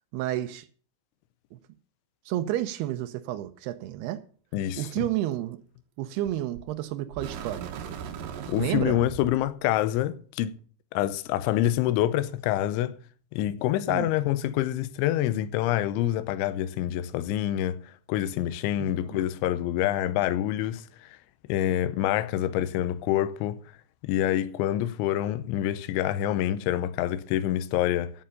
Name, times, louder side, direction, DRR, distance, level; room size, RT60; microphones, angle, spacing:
voice 1, 0.1-0.7 2.3-4.2 4.8-5.6 6.0-7.7 8.6-9.0 13.9-14.1 18.8-19.2, right 13 dB, 85° right, 2.3 m, -31 dB
voice 2, 4.5-5.1 8.5-10.5 10.9-12.9 13.3-17.8 18.1-21.2 21.5-23.6 24.0-28.1, left 13 dB, 85° left, 3.1 m, -26 dB
sound 1, 6.3-6.7 7.1-9.5, right 7 dB, 70° right, 2.3 m, -38 dB
11.0 x 7.9 x 6.7 m
omnidirectional pair, 5.5 m